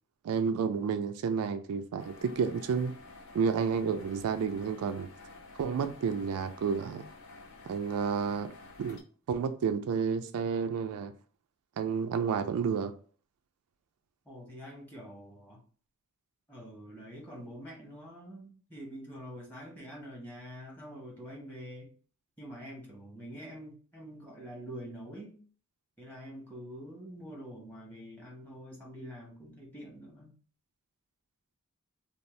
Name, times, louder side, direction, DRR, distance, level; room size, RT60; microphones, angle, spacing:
voice 1, 0.2-3.0 3.3-5.1 5.6-7.0 7.7-8.5 8.8-9.0 9.3-11.1 11.8-12.9, right 6 dB, 80° right, 0.3 m, -30 dB
sound 1, 2.0-9.0, left 3 dB, 65° left, 0.5 m, -51 dB
voice 2, 14.2-15.6 16.5-21.9 22.4-25.4 26.0-30.3, equal, 10° left, 1.0 m, -46 dB
2.6 x 2.0 x 3.1 m
head